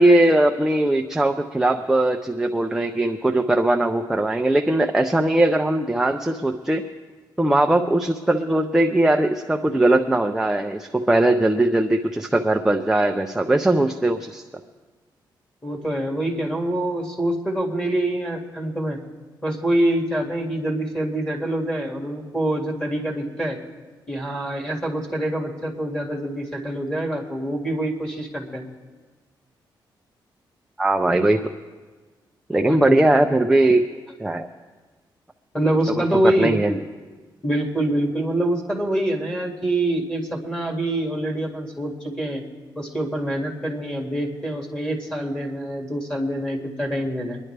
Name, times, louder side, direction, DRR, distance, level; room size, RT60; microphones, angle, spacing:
voice 1, 0.0-6.9 7.4-14.4 30.8-31.4 32.5-33.8 34.2-34.5 36.4-36.8, right 1 dB, 5° right, 4 dB, 0.5 m, -20 dB
voice 2, 15.6-19.0 19.4-23.6 24.1-28.6 32.7-33.0 35.5-36.6 37.4-42.4 42.8-47.4, right 1 dB, 10° left, 0 dB, 2.1 m, -25 dB
24.5 x 10.5 x 3.3 m, 1.4 s
wide cardioid pair, 155°, 8 cm